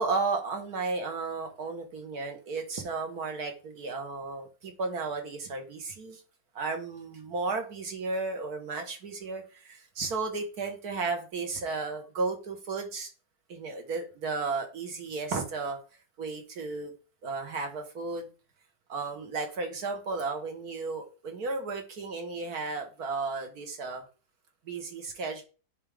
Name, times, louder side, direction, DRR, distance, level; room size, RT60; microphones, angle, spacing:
voice 1, 0.0-6.2 6.6-13.1 13.5-15.8 16.2-16.9 17.2-18.3 18.9-24.0 24.7-25.4, right 4 dB, 70° right, 4 dB, 1.9 m, -34 dB
9.7 x 3.6 x 3.5 m, 0.34 s
omnidirectional pair, 1.7 m